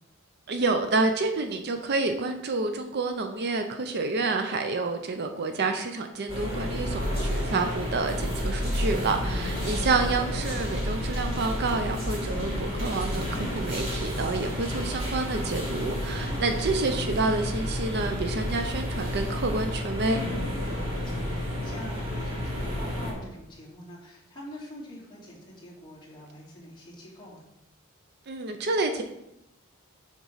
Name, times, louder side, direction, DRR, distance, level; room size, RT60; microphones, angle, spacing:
voice 1, 0.5-20.2 28.3-29.0, right 3 dB, 50° right, 6 dB, 0.5 m, -28 dB
sound 1, 6.3-23.1, left 1 dB, 25° right, 2.5 m, -30 dB
voice 2, 9.5-9.8 16.2-16.6 20.7-27.4, left 1 dB, 20° left, -8 dB, 2.7 m, -45 dB
7.1 x 3.7 x 5.5 m, 0.86 s
head